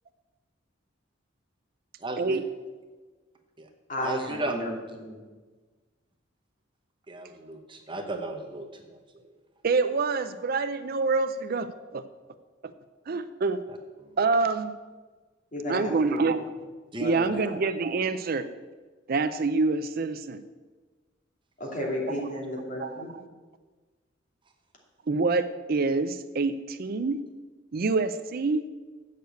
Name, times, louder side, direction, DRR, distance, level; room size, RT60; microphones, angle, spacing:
voice 1, 2.0-2.4 3.6-3.7 4.0-4.6 7.1-9.0 13.7-14.2 16.9-17.1, right 2 dB, 25° right, 3 dB, 0.9 m, -35 dB
voice 2, 3.9-5.2 15.5-16.3 16.9-17.5 21.6-23.1, left 1 dB, 40° left, -2 dB, 2.6 m, -33 dB
voice 3, 9.6-12.0 13.1-13.6 14.2-14.7 15.7-16.4 17.0-18.5 19.1-20.4 22.8-23.0 25.1-27.2 27.7-28.7, right 3 dB, 50° right, 11 dB, 0.4 m, -26 dB
7.9 x 6.6 x 8.3 m, 1.3 s
head